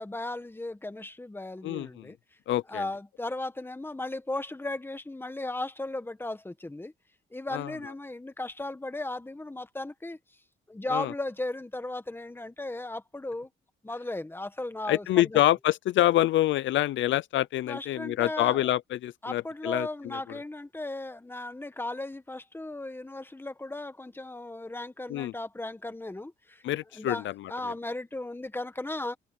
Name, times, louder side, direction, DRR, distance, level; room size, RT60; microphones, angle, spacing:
voice 1, 0.0-2.2 2.7-6.9 7.3-10.2 10.7-13.5 13.8-15.4 17.7-18.7 19.2-26.6 26.9-29.2, left 2 dB, 10° left, 1.5 m, -36 dB
voice 2, 1.6-2.1 2.5-2.9 7.5-7.7 10.9-11.1 14.9-20.4 25.1-25.3 26.6-27.7, left 14 dB, 75° left, 0.5 m, -27 dB
cardioid pair, 90°, 20 cm